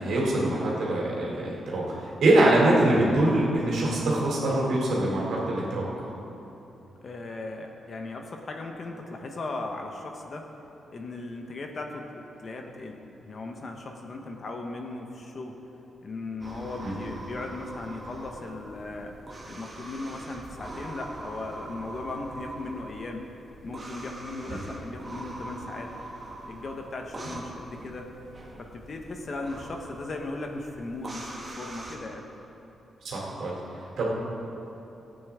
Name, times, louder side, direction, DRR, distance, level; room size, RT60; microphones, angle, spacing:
voice 1, 0.0-5.8 16.8-16.9 24.5-24.6 27.2-27.3 33.0-33.5 34.0-34.1, right 1 dB, 70° right, -4 dB, 2.9 m, -24 dB
voice 2, 7.0-10.5 10.9-15.6 16.0-19.1 19.5-23.2 23.6-25.9 26.5-28.1 28.6-32.2, left 2 dB, 35° left, 3 dB, 0.9 m, -37 dB
sound 1, 16.4-32.0, right 1 dB, 25° right, 1.3 m, -42 dB
18.0 x 8.8 x 3.6 m, 3.0 s
wide cardioid pair, 170°, 0 cm